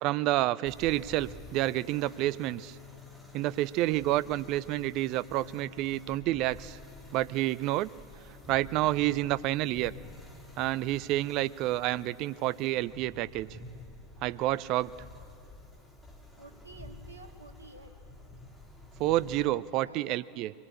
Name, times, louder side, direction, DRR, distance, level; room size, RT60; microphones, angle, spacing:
voice 1, 0.0-2.8 3.3-6.8 7.1-7.9 8.5-9.9 10.6-13.6 14.2-14.9 19.0-20.5, right 16 dB, 40° right, 18 dB, 0.5 m, -29 dB
sound 1, 0.7-19.5, left 3 dB, ahead, 3.3 m, -50 dB
voice 2, 16.4-18.0 19.6-20.3, right 3 dB, 80° right, 5 dB, 1.7 m, -51 dB
23.0 x 19.5 x 8.5 m, 2.7 s
figure-of-eight pair, 90°, 0 cm